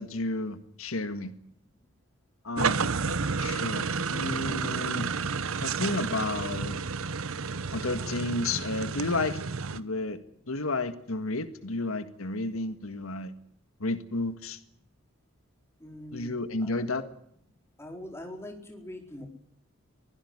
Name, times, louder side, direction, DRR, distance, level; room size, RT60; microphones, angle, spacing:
voice 1, 0.0-1.3 2.4-5.1 5.6-6.8 7.7-9.4 9.7-10.2 10.5-13.3 13.8-14.6 16.1-17.0, left 2 dB, 80° left, 11 dB, 1.7 m, -32 dB
voice 2, 1.6-1.9 15.8-16.3 16.6-17.1 17.8-19.3, left 1 dB, 10° left, 3 dB, 4.3 m, -44 dB
sound 1, 2.6-9.8, right 5 dB, 75° right, 1.0 m, -31 dB
23.5 x 16.5 x 9.8 m, 0.68 s
head